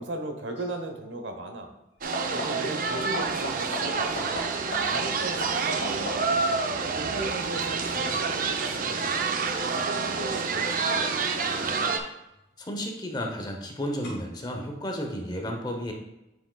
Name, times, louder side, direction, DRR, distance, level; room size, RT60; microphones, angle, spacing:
voice 1, 0.0-1.7 2.3-4.4 4.8-6.3 6.9-9.3 9.6-11.5, right 1 dB, 85° right, 4 dB, 1.0 m, -37 dB
sound 1, 0.5-0.8 2.0-2.8 3.1-6.5 11.9-12.5 14.0-14.1, equal, 70° left, 2.1 m, -37 dB
sound 2, 2.0-12.0, right 4 dB, 45° right, 0.5 m, -28 dB
voice 2, 12.6-15.9, equal, 20° left, 2 dB, 0.8 m, -33 dB
9.1 x 5.0 x 2.3 m, 0.93 s
head